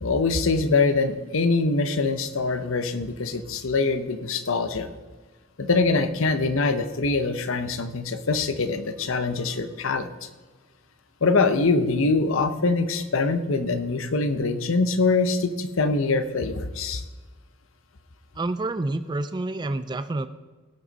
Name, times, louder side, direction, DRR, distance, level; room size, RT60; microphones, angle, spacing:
voice 1, 0.0-4.9 5.6-10.1 11.2-17.0, left 3 dB, 65° left, 10 dB, 0.8 m, -24 dB
voice 2, 18.4-20.3, right 2 dB, 20° right, 11 dB, 0.3 m, -28 dB
16.5 x 6.2 x 4.0 m, 1.3 s
head